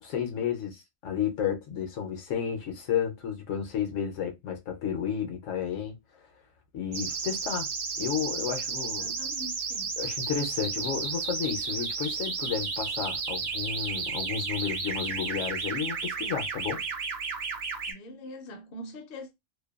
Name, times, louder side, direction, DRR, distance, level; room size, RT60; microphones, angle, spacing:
voice 1, 0.0-6.0 6.7-7.7 8.0-9.1 10.0-16.8, left 8 dB, 75° left, 1.0 m, -32 dB
sound 1, 6.9-17.9, right 4 dB, 60° right, 0.8 m, -33 dB
voice 2, 8.8-10.0 17.9-19.3, left 1 dB, 55° left, 0.7 m, -43 dB
2.6 x 2.2 x 2.3 m
omnidirectional pair, 1.4 m